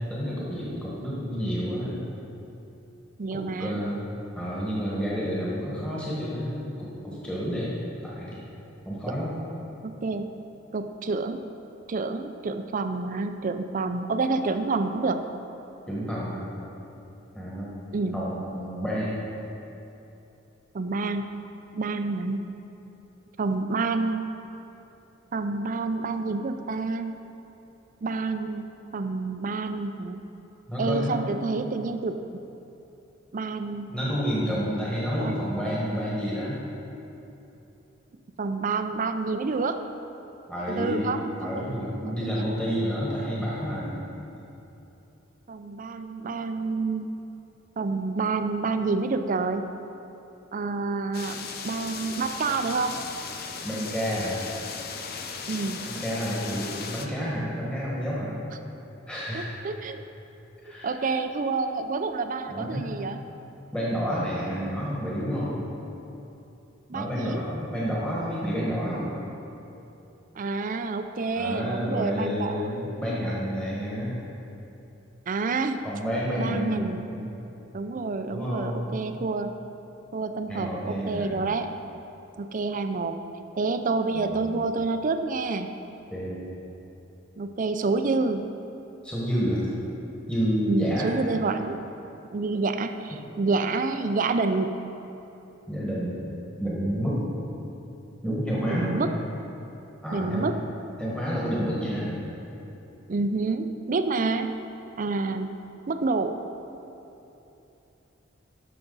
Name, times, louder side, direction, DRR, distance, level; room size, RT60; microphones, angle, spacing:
voice 1, 0.0-2.0 3.3-4.1 4.3-7.8 8.0-8.4 8.8-9.4 15.9-16.4 17.3-17.7 18.1-19.2 30.7-31.4 33.9-36.6 40.5-44.1 53.6-54.4 55.9-58.3 59.1-59.6 60.6-61.0 62.5-62.9 63.7-65.6 66.9-69.1 71.3-74.1 75.8-76.8 77.1-77.3 78.3-79.0 80.5-81.3 84.1-84.4 86.1-86.5 89.0-89.7 90.3-91.1 95.7-96.2 96.6-97.2 98.2-99.0 100.0-100.5 101.0-102.2, equal, 5° left, -7 dB, 1.5 m, -29 dB
voice 2, 3.2-3.8 9.8-10.3 10.7-11.4 11.9-15.2 17.9-18.2 20.7-21.3 21.7-22.5 23.4-24.2 25.3-27.2 28.0-30.2 30.8-32.4 33.3-33.9 35.2-35.4 38.4-39.8 40.7-41.7 42.1-42.5 45.5-47.1 47.8-49.7 50.5-51.4 51.6-53.0 55.5-55.8 59.3-60.1 60.8-63.2 66.9-67.4 70.4-72.7 75.3-75.8 76.4-77.1 77.7-79.6 80.1-81.7 82.4-83.2 83.6-85.7 87.4-88.4 90.7-91.8 92.3-94.7 98.7-99.1 100.1-100.6 103.1-104.5 105.0-105.5 105.9-106.5, right 3 dB, 45° right, 8 dB, 0.4 m, -28 dB
sound 1, 51.1-57.1, left 5 dB, 50° left, 0.6 m, -37 dB
12.5 x 5.8 x 4.0 m, 3.0 s
head